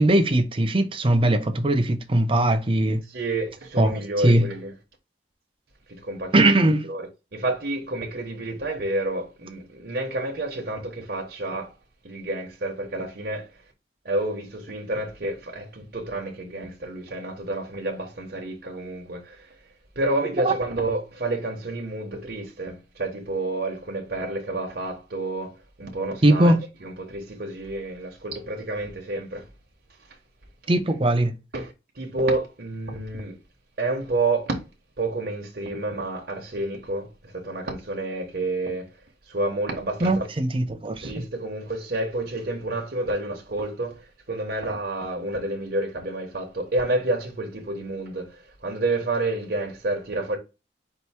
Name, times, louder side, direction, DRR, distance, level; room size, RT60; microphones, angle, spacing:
voice 1, 0.0-3.0 3.8-4.4 6.3-6.9 20.4-20.5 26.2-26.6 30.7-31.3 40.0-41.1, right 1 dB, 30° right, 0.6 m, -20 dB
voice 2, 3.0-4.7 5.9-6.4 6.8-11.7 12.0-13.5 14.0-19.6 20.0-29.5 30.1-30.2 31.5-33.4 33.8-34.6 35.0-38.9 39.3-40.3 41.0-50.4, right 2 dB, 55° right, 0.9 m, -29 dB
4.6 x 2.6 x 4.1 m
head